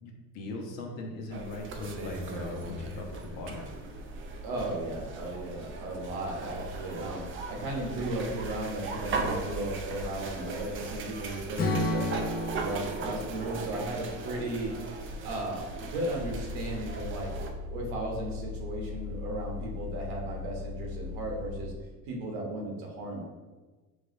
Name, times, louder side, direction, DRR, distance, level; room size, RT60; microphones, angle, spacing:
voice 1, 0.0-3.6, left 2 dB, 70° left, 1 dB, 1.0 m, -39 dB
sound 1, 1.3-17.5, right 3 dB, 35° right, 0.4 m, -38 dB
voice 2, 4.4-12.1 12.5-14.7 15.2-17.3 17.7-21.7 22.1-23.2, right 2 dB, 80° right, -1 dB, 1.2 m, -35 dB
Strum, 11.6-15.8, left 2 dB, 25° left, 0.5 m, -34 dB
sound 2, 16.2-21.7, left 4 dB, 10° right, 1.1 m, -39 dB
4.7 x 3.3 x 2.6 m, 1.3 s
cardioid pair, 135°, 37 cm